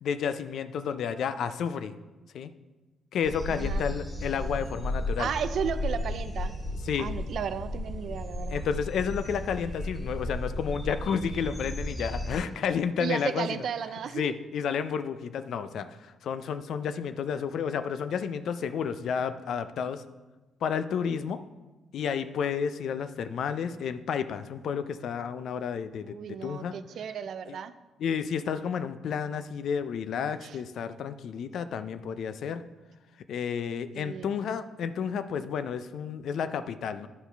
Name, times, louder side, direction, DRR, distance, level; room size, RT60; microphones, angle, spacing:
voice 1, 0.0-1.9 2.3-2.5 3.1-5.3 6.9-7.1 8.5-13.5 14.2-20.0 20.6-21.4 21.9-26.7 27.5-27.6 28.0-32.6 33.3-37.1, left 7 dB, 70° left, 11 dB, 0.4 m, -31 dB
sound 1, 3.2-12.4, left 1 dB, 5° left, 2.4 m, -34 dB
voice 2, 3.5-3.8 5.2-6.6 7.0-8.7 13.0-14.3 26.1-27.7 30.4-30.6 33.9-34.3, right 7 dB, 65° right, 13 dB, 0.4 m, -34 dB
11.0 x 4.7 x 3.4 m, 1.2 s
cardioid pair, 90°, 0 cm